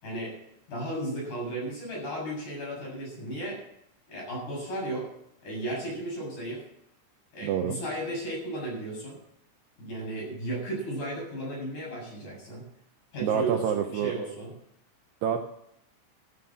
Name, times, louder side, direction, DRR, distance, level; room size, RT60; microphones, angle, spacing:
voice 1, 0.0-0.3 0.7-3.6 4.1-5.1 5.4-6.6 7.3-9.2 9.8-12.6 13.1-14.5, right 1 dB, 40° left, -3 dB, 8.6 m, -34 dB
voice 2, 7.4-7.8 13.2-14.1 15.2-15.4, right 8 dB, 85° right, 4 dB, 2.4 m, -27 dB
13.0 x 9.5 x 7.4 m, 0.74 s
omnidirectional pair, 5.8 m